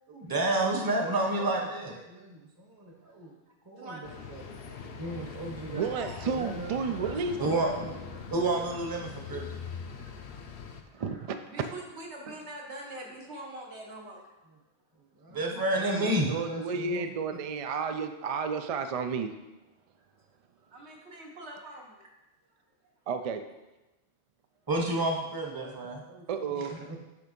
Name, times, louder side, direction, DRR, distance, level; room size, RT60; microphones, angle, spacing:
voice 1, 0.1-2.4 2.8-3.3 3.7-4.0 4.3-4.4 4.9-5.8 6.3-6.7 7.4-9.4 15.2-17.0 24.7-26.2 26.9-27.0, right 2 dB, 20° right, 1 dB, 0.8 m, -30 dB
voice 2, 3.8-6.2 10.9-11.1 11.5-14.2 20.6-22.1, right 1 dB, 80° right, -1 dB, 1.6 m, -45 dB
sound 1, 4.0-10.8, left 6 dB, 65° left, 0.9 m, -42 dB
voice 3, 5.7-7.6 11.0-11.4 16.3-19.3 23.1-23.4 26.3-26.8, right 5 dB, 60° right, 7 dB, 0.4 m, -32 dB
7.9 x 3.4 x 5.2 m, 1.0 s
omnidirectional pair, 1.1 m